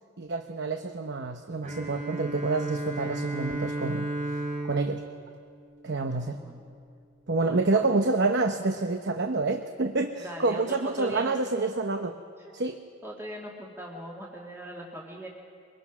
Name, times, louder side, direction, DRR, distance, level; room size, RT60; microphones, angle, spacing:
voice 1, 0.2-4.1 4.6-5.0 5.8-6.4 7.3-12.1 12.5-12.8, right 3 dB, 60° right, 6 dB, 0.9 m, -28 dB
Bowed string instrument, 1.6-6.3, right 2 dB, 40° right, 4.4 m, -34 dB
voice 2, 5.9-6.6 7.5-7.9 10.2-11.3 12.4-12.5 13.0-15.3, equal, 15° right, -3 dB, 2.1 m, -40 dB
24.0 x 21.5 x 6.1 m, 2.3 s
head